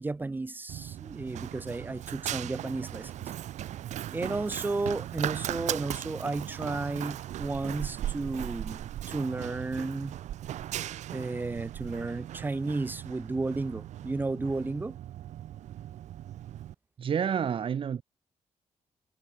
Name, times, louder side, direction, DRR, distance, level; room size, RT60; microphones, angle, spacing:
voice 1, 0.0-3.3 4.1-10.1 11.1-15.0, right 3 dB, 15° right, 2.0 m, -33 dB
Run, 0.7-16.7, right 12 dB, 85° right, 1.5 m, -38 dB
voice 2, 17.0-18.0, right 8 dB, 50° right, 5.1 m, -29 dB
wide cardioid pair, 155°, 12 cm